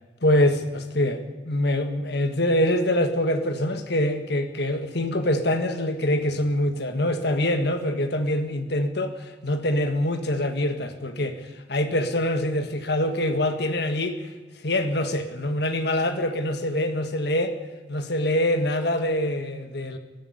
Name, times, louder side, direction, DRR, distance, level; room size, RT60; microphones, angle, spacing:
voice 1, 0.2-14.3 14.6-17.6 17.9-20.0, left 1 dB, 60° left, 7 dB, 1.7 m, -24 dB
22.5 x 13.5 x 10.0 m, 1.3 s
head